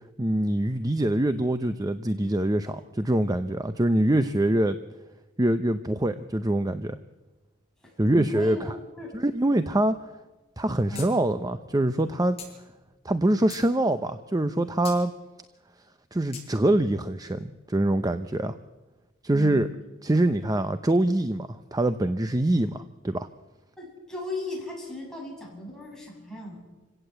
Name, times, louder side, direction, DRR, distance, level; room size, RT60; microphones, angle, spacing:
voice 1, 0.2-4.8 5.4-7.0 8.0-8.7 9.1-10.0 10.6-12.4 13.0-15.1 16.1-18.6 19.2-19.7 20.0-23.3, right 1 dB, 20° right, 10 dB, 0.7 m, -24 dB
voice 2, 7.8-9.2 10.9-11.2 19.3-19.8 23.8-26.6, left 1 dB, 5° left, -2 dB, 7.3 m, -37 dB
sound 1, 10.9-11.1 11.4-11.5 12.4-12.5 13.1-13.7 14.8-15.0 16.3-16.5, left 6 dB, 30° left, 7.4 m, -40 dB
27.0 x 17.0 x 8.0 m, 1.2 s
head